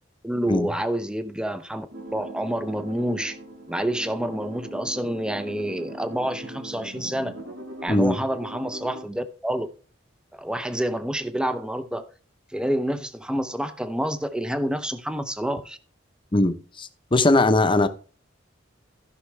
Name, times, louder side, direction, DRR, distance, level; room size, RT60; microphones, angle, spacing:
voice 1, 0.2-3.4 3.7-7.3 7.8-9.7 10.3-12.1 12.5-15.8, right 1 dB, 5° right, 0.7 m, -28 dB
sound 1, 1.9-9.0, right 1 dB, 80° right, 4.5 m, -39 dB
voice 2, 16.3-17.9, left 2 dB, 25° left, 0.9 m, -20 dB
15.0 x 5.9 x 3.3 m
head